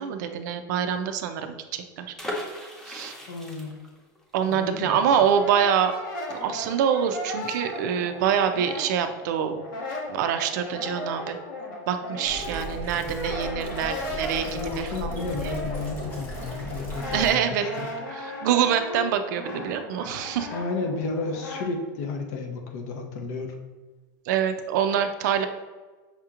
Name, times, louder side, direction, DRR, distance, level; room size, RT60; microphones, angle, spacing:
voice 1, 0.0-2.1 2.9-3.1 4.3-5.9 6.3-9.6 10.1-11.4 11.9-15.1 17.1-17.7 18.1-20.5 24.3-25.5, right 8 dB, 65° right, 8 dB, 0.4 m, -25 dB
sound 1, 2.2-7.8 8.1-8.2 8.5-8.8, left 1 dB, 5° left, 0.5 m, -39 dB
voice 2, 3.3-3.8 4.5-5.2 14.5-17.9 20.5-23.6, left 3 dB, 55° left, 4 dB, 0.7 m, -32 dB
Brass instrument, 4.8-9.2 9.5-21.7, left 1 dB, 80° left, 1.2 m, -36 dB
sound 2, 12.2-17.3, right 1 dB, 20° left, 1.0 m, -37 dB
5.6 x 2.9 x 2.4 m, 1.3 s
supercardioid pair, 165°, 11 cm